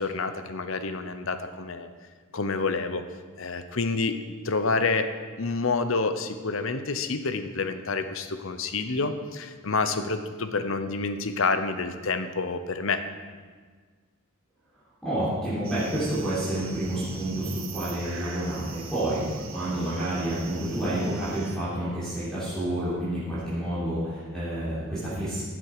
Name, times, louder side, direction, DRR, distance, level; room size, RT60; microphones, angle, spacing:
voice 1, 0.0-1.9 2.3-3.0 3.4-13.0, left 4 dB, 70° left, 9 dB, 0.9 m, -28 dB
voice 2, 15.0-25.4, right 1 dB, 5° left, -12 dB, 3.6 m, -29 dB
sound 1, 15.6-21.6, right 3 dB, 65° right, 1.2 m, -39 dB
15.0 x 7.8 x 5.0 m, 1.5 s
head